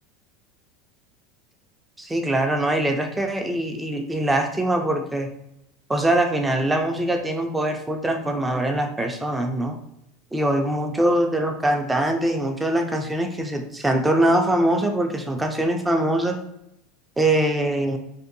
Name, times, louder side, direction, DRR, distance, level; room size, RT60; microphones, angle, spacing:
voice 1, 2.0-5.3 5.9-9.8 10.3-16.4 17.2-18.0, right 1 dB, 10° right, 4 dB, 0.3 m, -23 dB
2.6 x 2.2 x 2.5 m, 0.84 s
supercardioid pair, 125°, 0 cm